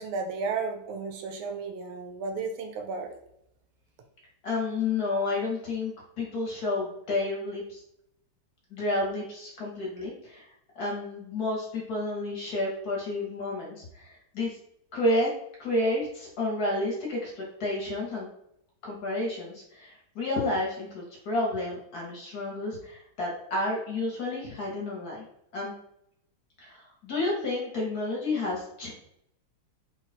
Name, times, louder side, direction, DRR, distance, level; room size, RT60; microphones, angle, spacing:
voice 1, 0.0-3.1, right 4 dB, 80° right, 5 dB, 1.5 m, -33 dB
voice 2, 4.4-7.8 8.7-10.5 10.8-14.6 14.9-15.3 15.6-18.3 18.8-25.2 25.5-25.7 26.6-28.9, left 2 dB, 55° left, -3 dB, 1.3 m, -30 dB
4.1 x 2.3 x 4.0 m, 0.77 s
omnidirectional pair, 2.4 m